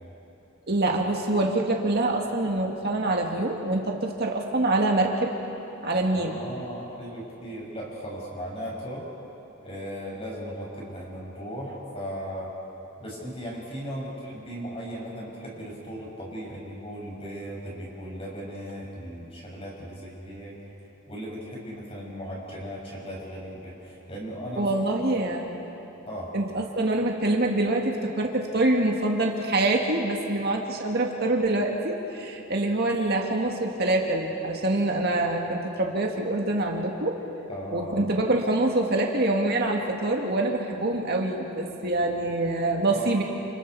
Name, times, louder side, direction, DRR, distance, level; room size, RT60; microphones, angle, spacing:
voice 1, 0.7-5.3 5.8-6.4 24.6-25.5 26.3-37.2 37.7-43.2, right 2 dB, 50° right, 1 dB, 2.0 m, -25 dB
voice 2, 6.1-9.0 9.6-12.5 13.0-20.5 21.1-24.7 25.1-25.2 26.1-26.3 37.5-38.0 42.9-43.1, equal, 30° left, -4 dB, 6.9 m, -37 dB
29.5 x 29.5 x 4.8 m, 3.0 s
head